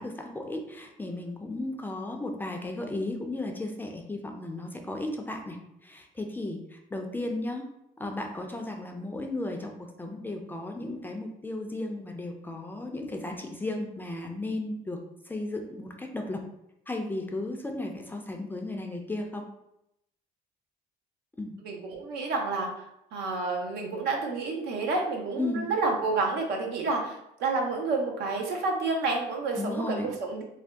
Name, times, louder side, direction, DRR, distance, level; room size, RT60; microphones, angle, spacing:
voice 1, 0.0-7.7 8.0-9.7 10.0-16.4 16.9-19.4 21.4-21.5 25.4-25.7 29.6-30.1, left 2 dB, 10° left, 2 dB, 0.4 m, -35 dB
voice 2, 21.6-22.8 23.1-30.4, right 3 dB, 80° right, 1 dB, 0.7 m, -29 dB
2.6 x 2.2 x 3.4 m, 0.82 s
cardioid pair, 110°, 17 cm